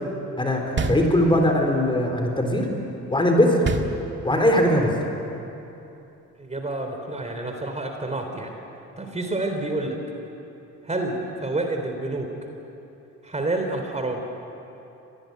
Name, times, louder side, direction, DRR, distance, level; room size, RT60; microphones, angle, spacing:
voice 1, 0.4-2.7 3.1-3.6 4.2-4.9, left 1 dB, 15° left, 3 dB, 4.2 m, -20 dB
sound 1, 0.8-1.7 3.6-4.6, right 3 dB, 40° right, 2.0 m, -28 dB
voice 2, 6.4-8.5 9.0-10.0 10.8-12.3 13.2-14.2, right 2 dB, 20° right, 4 dB, 3.6 m, -28 dB
25.0 x 19.0 x 9.4 m, 2.9 s
cardioid pair, 90°, 30 cm